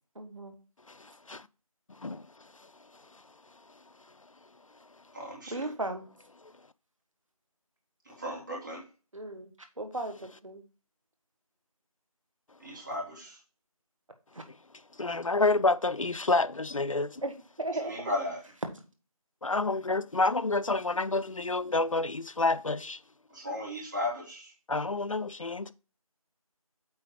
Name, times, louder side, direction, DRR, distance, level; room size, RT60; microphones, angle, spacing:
voice 1, 0.1-0.5 5.5-6.1 9.1-9.5 9.8-10.6 14.3-14.4 17.2-18.1, right 2 dB, 60° right, 1.5 m, -36 dB
voice 2, 0.9-1.5 2.0-2.3 15.0-17.2 19.4-23.0 24.7-25.7, left 3 dB, 60° left, 0.5 m, -28 dB
voice 3, 5.1-5.7 8.0-8.8 12.6-13.4 17.7-18.4 23.3-24.5, left 1 dB, 30° right, 2.3 m, -36 dB
8.7 x 3.7 x 4.6 m
figure-of-eight pair, 170°, 19 cm